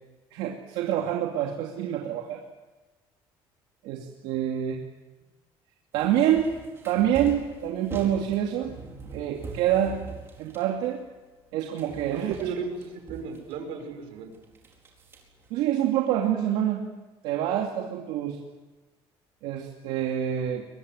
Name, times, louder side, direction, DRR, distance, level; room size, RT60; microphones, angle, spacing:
voice 1, 0.3-2.4 3.8-4.8 5.9-6.5 6.8-8.7 9.1-10.0 10.4-11.0 11.5-12.3 15.5-16.8 17.2-18.4 19.4-20.6, right 10 dB, 90° right, 1 dB, 2.7 m, -26 dB
sound 1, 5.9-11.5 11.8-13.9 14.3-15.6, right 4 dB, 25° right, 4.6 m, -43 dB
voice 2, 12.1-14.3, right 6 dB, 75° right, 5 dB, 6.1 m, -35 dB
23.0 x 22.5 x 9.5 m, 1.2 s
cardioid pair, 175°, 10 cm